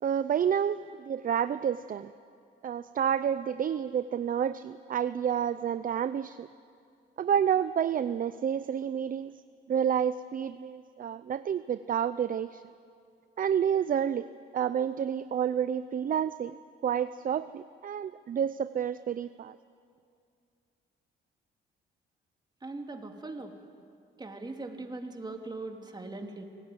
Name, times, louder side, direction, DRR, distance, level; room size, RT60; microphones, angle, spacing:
voice 1, 0.0-2.1 2.6-6.5 7.2-9.3 9.7-12.6 13.4-14.3 14.5-19.6, right 8 dB, 45° right, 14 dB, 0.6 m, -29 dB
voice 2, 22.6-23.5 24.2-26.4, right 2 dB, 20° right, 3 dB, 2.9 m, -40 dB
26.0 x 17.5 x 9.5 m, 2.4 s
cardioid pair, 90°, 20 cm